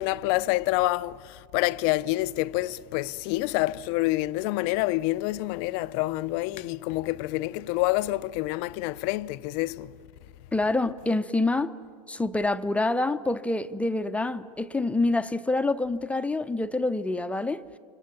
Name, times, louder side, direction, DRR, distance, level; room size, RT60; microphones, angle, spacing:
voice 1, 0.0-10.0, left 18 dB, 50° left, 0.5 m, -27 dB
voice 2, 10.5-11.7 12.1-17.6, left 2 dB, 5° left, 0.6 m, -26 dB
30.0 x 25.0 x 7.2 m
hypercardioid pair, 115°, 19 cm